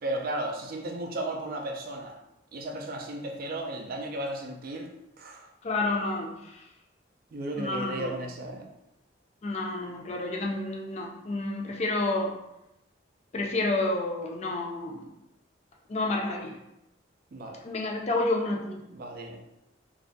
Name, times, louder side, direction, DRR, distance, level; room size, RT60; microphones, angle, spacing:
voice 1, 0.0-2.2 2.5-4.9 5.2-5.5 7.3-8.7 17.3-17.6 18.9-19.4, right 1 dB, 50° right, 2 dB, 0.4 m, -34 dB
voice 2, 5.6-6.6 7.6-8.1 9.4-12.3 13.3-15.1 15.9-16.6 17.6-18.8, left 2 dB, 35° left, 0 dB, 0.4 m, -30 dB
2.3 x 2.1 x 2.5 m, 0.87 s
head